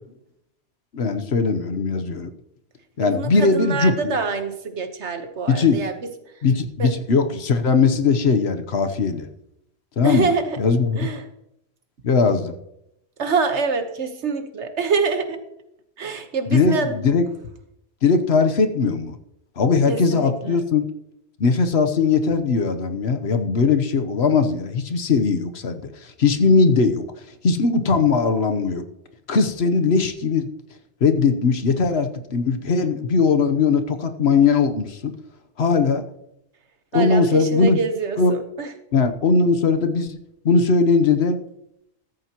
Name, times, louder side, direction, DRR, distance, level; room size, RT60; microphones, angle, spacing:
voice 1, 0.9-2.3 3.0-4.2 5.5-5.8 6.4-9.3 10.0-10.3 10.6-11.0 12.0-12.5 16.5-17.3 18.0-19.2 19.6-20.8 21.4-27.0 27.4-28.8 29.3-30.5 31.0-35.1 35.6-36.0 36.9-37.8 38.2-38.3 38.9-40.2 40.4-41.4, left 4 dB, 70° left, 8 dB, 1.2 m, -19 dB
voice 2, 3.0-6.1 6.8-6.9 10.0-10.6 11.0-11.2 13.2-15.4 16.0-17.0 19.9-20.6 36.9-38.7, right 4 dB, 85° right, 7 dB, 1.5 m, -25 dB
14.5 x 14.0 x 3.0 m, 0.83 s
omnidirectional pair, 1.1 m